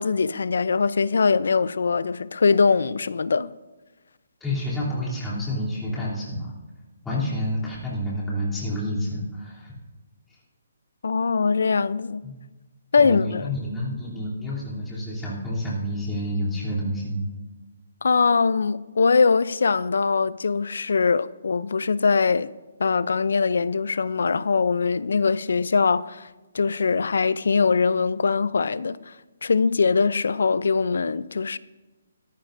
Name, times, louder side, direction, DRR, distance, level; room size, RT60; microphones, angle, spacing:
voice 1, 0.0-3.5 11.0-12.2 12.9-13.5 18.0-22.5 22.8-26.3 26.5-29.1 29.4-31.6, left 5 dB, 75° left, 0.5 m, -22 dB
voice 2, 4.4-6.5 7.0-9.7 12.2-12.4 13.0-17.2, left 1 dB, 5° left, 3.1 m, -29 dB
18.0 x 13.5 x 2.6 m
hypercardioid pair, 160°, 0 cm